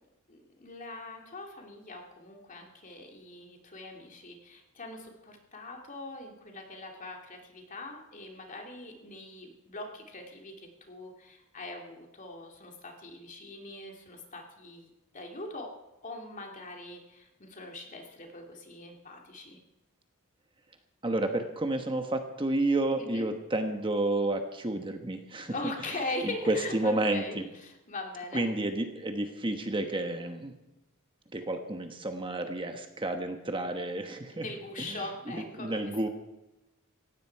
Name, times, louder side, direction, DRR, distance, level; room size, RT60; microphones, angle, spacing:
voice 1, 0.3-15.7 16.0-19.6 23.0-23.3 25.5-28.4 34.3-36.1, left 2 dB, 40° left, 2 dB, 2.7 m, -41 dB
voice 2, 21.0-25.5 26.2-27.5 28.3-30.5 31.3-34.5 34.8-36.1, right 2 dB, 25° right, 6 dB, 1.2 m, -31 dB
18.0 x 15.5 x 4.7 m, 0.96 s
head